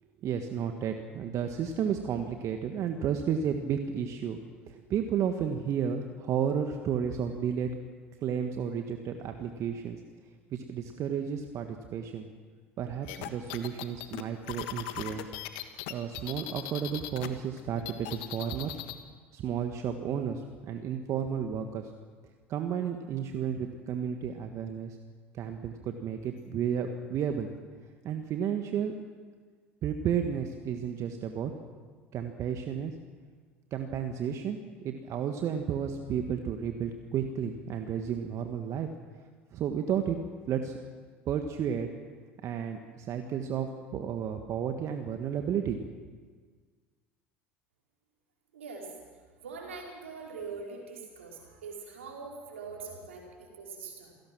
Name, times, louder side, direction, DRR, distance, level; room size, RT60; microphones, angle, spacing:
voice 1, 0.2-4.4 4.7-7.7 8.2-10.0 10.5-12.3 12.8-15.3 15.9-18.8 19.3-21.9 22.5-25.0 25.3-27.5 28.0-28.9 29.8-31.5 32.1-32.9 33.7-34.6 34.8-38.9 39.5-40.2 40.5-40.8 41.2-41.9 42.4-43.7 43.9-45.9, right 8 dB, 50° right, 6 dB, 1.5 m, -32 dB
sound 1, 13.1-17.3 17.6-19.0, left 14 dB, 65° left, 1.5 m, -39 dB
voice 2, 48.5-54.1, right 4 dB, 80° right, -1 dB, 4.8 m, -43 dB
28.0 x 17.5 x 6.2 m, 1.5 s
hypercardioid pair, 70°, 7 cm